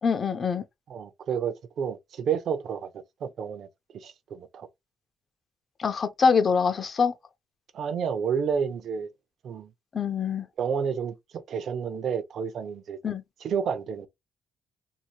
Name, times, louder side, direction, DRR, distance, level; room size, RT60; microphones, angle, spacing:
voice 1, 0.0-0.6 5.8-7.1 9.9-10.5 13.0-13.2, left 5 dB, 45° left, 0.6 m, -24 dB
voice 2, 0.9-2.9 3.2-3.7 3.9-4.7 7.7-9.1 9.4-9.7 10.6-13.0 13.4-14.1, right 7 dB, 65° right, 0.6 m, -30 dB
3.0 x 2.7 x 2.2 m
cardioid pair, 90°, 0 cm